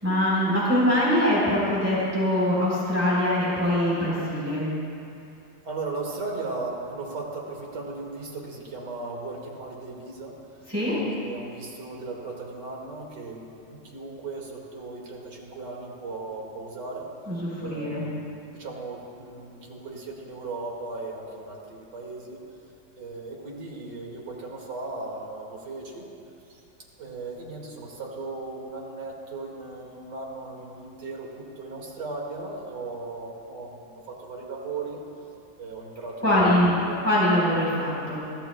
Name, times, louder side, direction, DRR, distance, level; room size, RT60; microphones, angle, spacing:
voice 1, 0.0-4.7 10.7-11.0 17.3-18.1 36.2-36.8 37.0-38.2, left 1 dB, 5° right, -8 dB, 3.9 m, -23 dB
voice 2, 5.6-10.4 10.8-17.1 17.6-22.4 23.0-26.1 26.5-26.6 27.0-35.0 35.6-37.0, right 3 dB, 60° right, -2 dB, 2.7 m, -37 dB
23.5 x 15.0 x 2.3 m, 2.6 s
omnidirectional pair, 2.1 m